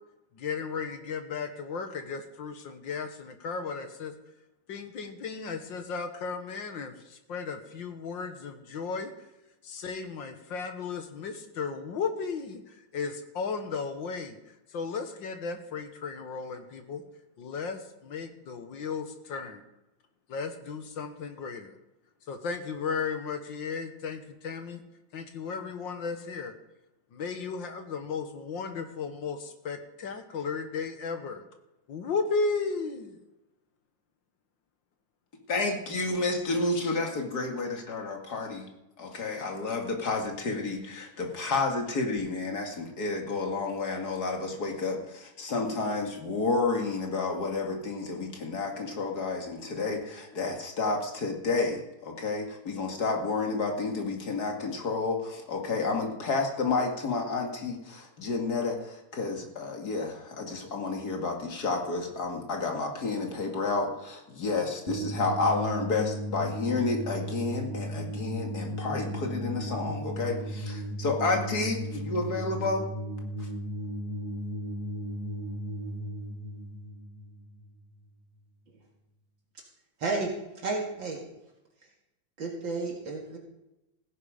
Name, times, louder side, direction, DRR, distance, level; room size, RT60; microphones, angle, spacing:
voice 1, 0.4-4.1 4.7-9.1 9.6-14.4 14.7-17.0 17.4-19.6 20.3-21.8 22.3-24.8 25.1-26.5 27.1-31.4 31.9-33.2, left 5 dB, 65° left, 7 dB, 1.9 m, -35 dB
voice 2, 35.5-38.7 39.0-72.9 73.4-73.5, left 3 dB, 45° left, 2 dB, 2.6 m, -30 dB
sound 1, 64.9-78.0, right 1 dB, 10° right, 4.6 m, -35 dB
voice 3, 80.0-80.3 80.6-81.2 82.4-83.4, right 3 dB, 60° right, -1 dB, 2.7 m, -31 dB
16.0 x 10.5 x 5.1 m, 0.95 s
omnidirectional pair, 2.3 m